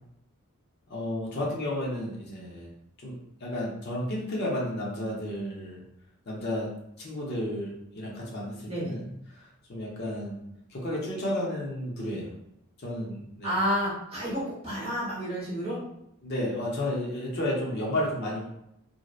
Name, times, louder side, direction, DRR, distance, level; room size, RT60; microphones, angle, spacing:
voice 1, 0.9-2.7 3.0-5.8 6.3-6.7 7.0-9.0 9.3-10.4 10.7-12.3 12.8-13.5 16.2-18.5, left 1 dB, 50° left, -4 dB, 0.6 m, -32 dB
voice 2, 8.6-9.0 13.4-15.8, equal, 25° right, -7 dB, 0.9 m, -30 dB
2.7 x 2.0 x 2.3 m, 0.80 s
head